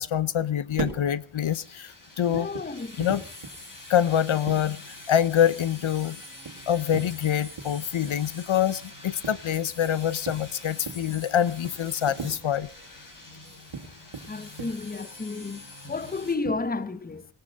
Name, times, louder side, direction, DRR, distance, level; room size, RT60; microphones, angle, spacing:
voice 1, 0.0-2.5 3.0-3.2 3.9-6.2 6.7-12.7, left 9 dB, 70° left, 0.7 m, -25 dB
sound 1, 0.6-16.8, right 5 dB, 80° right, 2.7 m, -42 dB
sound 2, 1.4-16.4, left 2 dB, 40° left, 5.7 m, -45 dB
voice 2, 2.3-3.0 14.3-17.3, left 3 dB, 20° left, 0.8 m, -32 dB
19.5 x 17.5 x 3.9 m
wide cardioid pair, 90°, 50 cm